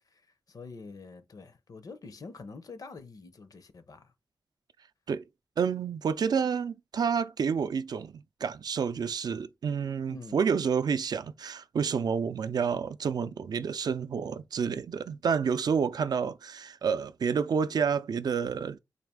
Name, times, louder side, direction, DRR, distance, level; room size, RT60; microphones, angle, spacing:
voice 1, 0.5-4.1 10.1-10.4, left 4 dB, 55° left, 0.6 m, -46 dB
voice 2, 5.6-18.8, right 6 dB, 65° right, 0.4 m, -29 dB
4.0 x 2.5 x 3.5 m
cardioid pair, 75°, 7 cm